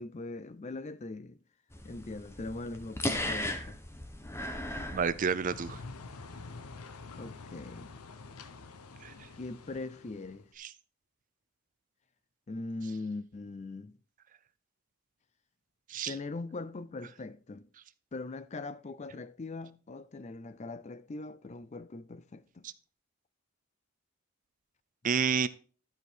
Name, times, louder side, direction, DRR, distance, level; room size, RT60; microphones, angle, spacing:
voice 1, 0.0-1.4 1.8-3.8 7.2-7.9 9.4-10.5 12.5-13.9 16.1-17.7 18.1-22.7, left 3 dB, 30° left, 0.4 m, -41 dB
sound 1, 1.7-5.8, left 1 dB, 10° left, 0.9 m, -37 dB
voice 2, 4.9-5.8 9.0-9.1 10.6-10.7 15.9-16.1 22.6-22.7 25.0-25.5, right 6 dB, 35° right, 0.4 m, -29 dB
sound 2, 5.5-10.5, left 3 dB, 85° left, 0.8 m, -47 dB
12.5 x 5.0 x 4.5 m
head